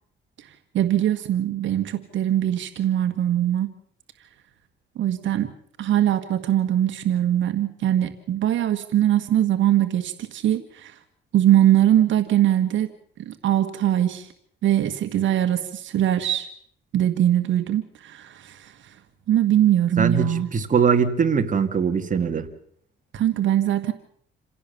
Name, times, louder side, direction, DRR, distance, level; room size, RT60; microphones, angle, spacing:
voice 1, 0.4-3.7 4.9-5.5 5.8-11.0 11.3-12.9 13.2-14.3 14.6-16.5 16.9-19.0 19.3-20.5 23.1-23.9, right 11 dB, 75° right, 8 dB, 1.6 m, -22 dB
voice 2, 20.0-22.5, right 6 dB, 40° right, 6 dB, 2.3 m, -21 dB
28.0 x 16.5 x 7.1 m, 0.65 s
cardioid pair, 90°, 20 cm